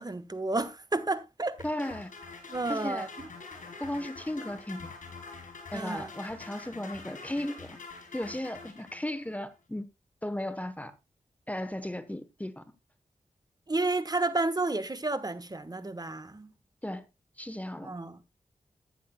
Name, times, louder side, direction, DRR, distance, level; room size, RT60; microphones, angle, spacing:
voice 1, 0.0-1.6 2.5-3.1 5.7-6.1 13.7-16.5 17.8-18.2, right 2 dB, 30° right, 1.3 m, -31 dB
sound 1, 1.6-9.3, left 4 dB, 85° left, 4.8 m, -46 dB
voice 2, 1.6-2.1 2.7-3.1 3.8-5.0 5.7-7.8 8.1-9.9 10.2-10.9 11.5-12.6 16.8-17.1 17.4-17.9, left 1 dB, 10° left, 1.0 m, -35 dB
14.5 x 10.5 x 2.2 m
wide cardioid pair, 65°, 13 cm